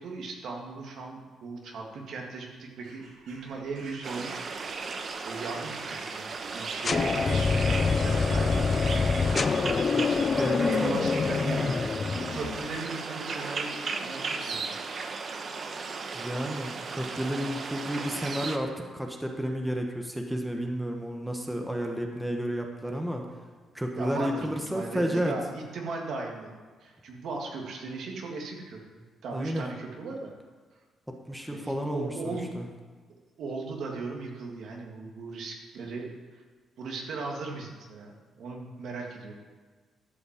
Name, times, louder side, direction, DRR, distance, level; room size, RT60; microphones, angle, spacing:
voice 1, 0.0-4.9 5.2-9.3 10.6-11.8 12.3-14.7 21.5-21.7 24.0-30.3 31.5-32.5 33.4-36.4 36.8-39.4, right 3 dB, 70° right, 0 dB, 1.9 m, -38 dB
Bird vocalization bird call bird song / Crow, 2.7-12.6, right 2 dB, 85° right, 2.4 m, -52 dB
sound 1, 4.0-18.6, right 4 dB, 45° right, 0.9 m, -36 dB
sound 2, 6.8-12.8, left 4 dB, 40° left, 0.4 m, -26 dB
voice 2, 10.4-11.2 16.1-23.2 23.7-25.3 29.3-29.6 31.3-32.7, equal, 5° right, 2 dB, 1.3 m, -31 dB
12.0 x 5.1 x 7.4 m, 1.4 s
cardioid pair, 90°, 0 cm